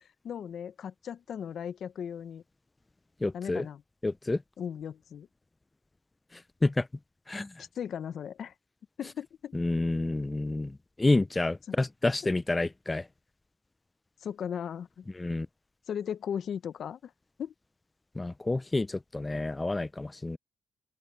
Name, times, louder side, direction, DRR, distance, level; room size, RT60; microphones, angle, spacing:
voice 1, 0.0-2.4 3.3-3.8 4.6-5.3 7.6-8.5 9.0-9.5 11.7-11.8 14.2-15.0 15.9-17.1 17.4-17.5, left 8 dB, 60° left, 0.9 m, -37 dB
voice 2, 3.2-3.7 4.0-4.4 6.3-6.9 7.3-7.6 9.5-13.1 15.1-15.5 18.2-20.4, left 2 dB, 15° left, 0.4 m, -29 dB
open air
cardioid pair, 90°, 0 cm